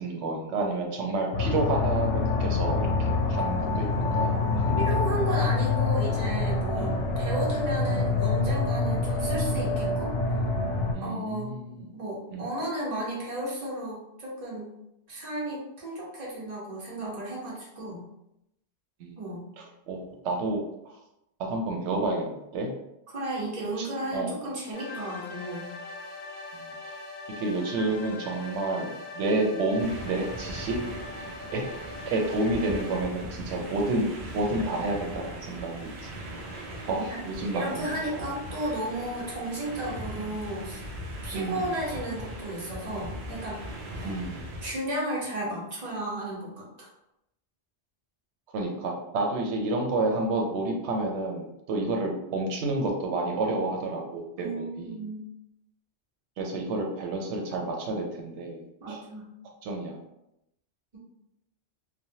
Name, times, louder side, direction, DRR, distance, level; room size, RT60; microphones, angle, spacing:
voice 1, 0.0-4.8 6.8-7.0 10.9-11.9 12.3-12.5 19.0-19.1 19.6-21.0 21.4-22.7 23.8-23.9 24.1-24.3 26.5-27.0 27.4-31.0 31.5-31.6 32.1-36.6 36.9-37.9 38.2-38.3 39.3-39.4 40.1-40.3 41.3-41.7 44.0-44.5 48.5-54.9 56.4-59.0 59.6-60.0, right 2 dB, 90° right, 1 dB, 0.9 m, -30 dB
sound 1, 1.3-10.9, left 3 dB, 70° left, 0.7 m, -26 dB
voice 2, 4.7-10.1 11.0-11.5 11.9-14.7 15.1-18.0 19.2-19.5 23.1-25.7 37.0-37.2 37.5-40.8 41.2-43.6 44.0-44.1 44.6-46.9 54.4-55.2 58.8-59.3, right 1 dB, 40° right, -5 dB, 1.0 m, -34 dB
sound 2, 24.7-33.0, left 3 dB, 35° left, 0.6 m, -41 dB
sound 3, 29.8-44.8, right 1 dB, 55° right, 0.7 m, -40 dB
3.1 x 2.2 x 2.7 m, 0.84 s
omnidirectional pair, 1.1 m